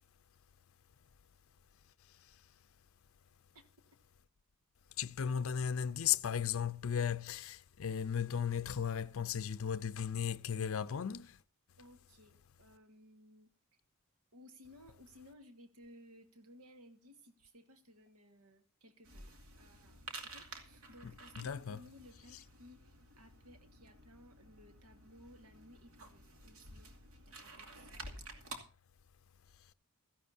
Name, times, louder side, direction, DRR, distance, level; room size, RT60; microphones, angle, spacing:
voice 1, 2.1-2.4 5.0-11.4 21.4-21.8, left 8 dB, 65° left, 0.5 m, -36 dB
voice 2, 11.8-13.5 14.3-26.9 27.3-28.3, left 1 dB, 90° right, 1.6 m, -59 dB
sound 1, 19.0-28.6, right 2 dB, 70° right, 2.6 m, -52 dB
16.5 x 15.0 x 2.7 m
head